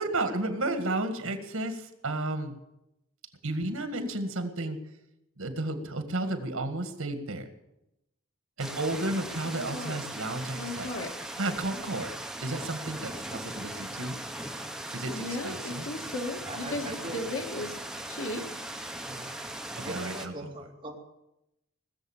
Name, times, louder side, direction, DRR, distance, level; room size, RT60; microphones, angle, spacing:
voice 1, 0.0-2.5 3.4-4.8 5.4-7.5 8.6-10.9 11.4-12.1 12.4-14.2 14.9-15.9 19.8-20.5, right 2 dB, 75° right, 1.9 m, -32 dB
sound 1, 8.6-20.3, right 1 dB, 5° right, 0.9 m, -39 dB
voice 2, 9.4-10.0 10.6-11.2 15.1-17.8 18.1-18.6, left 2 dB, 70° left, 2.5 m, -36 dB
voice 3, 15.5-15.9 16.5-17.3 19.0-19.3 19.8-21.0, right 1 dB, 25° right, 2.6 m, -41 dB
20.0 x 7.3 x 8.8 m
head